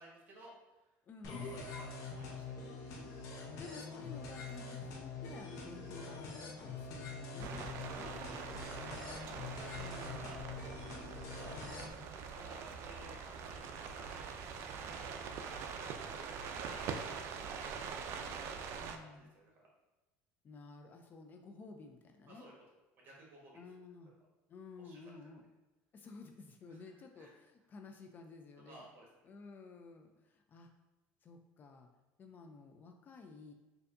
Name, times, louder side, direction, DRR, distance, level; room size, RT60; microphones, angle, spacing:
voice 1, 0.0-0.9 1.5-2.7 7.9-10.4 11.3-11.7 12.3-15.6 16.0-18.0 19.0-19.5 22.3-22.5 23.0-23.6 24.0-24.1 24.8-25.0 26.7-26.8 27.2-27.3 28.6-29.1, right 1 dB, 40° right, -3 dB, 1.3 m, -57 dB
voice 2, 1.1-1.5 3.3-8.1 9.8-10.3 18.8-19.3 20.4-22.5 23.5-24.1 24.5-25.4 25.9-28.8 29.2-30.7 31.2-31.9 32.2-33.5, left 4 dB, 35° left, 5 dB, 0.3 m, -53 dB
sound 1, 1.2-11.9, left 4 dB, 60° left, 0.7 m, -45 dB
sound 2, 7.4-19.0, right 6 dB, 55° right, 0.3 m, -44 dB
4.3 x 2.6 x 2.5 m, 1.1 s
supercardioid pair, 110°, 5 cm